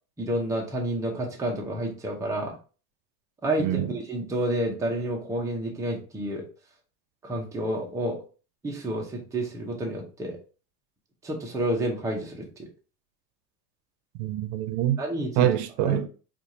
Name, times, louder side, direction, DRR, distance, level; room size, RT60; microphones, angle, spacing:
voice 1, 0.2-2.6 3.4-6.5 7.2-8.2 8.6-10.4 11.2-12.7 15.0-15.5 15.8-16.0, right 1 dB, 5° right, 0.5 m, -29 dB
voice 2, 3.6-3.9 14.2-15.0 15.4-16.1, right 12 dB, 75° right, 0.6 m, -25 dB
4.4 x 2.4 x 2.6 m
supercardioid pair, 140°, 47 cm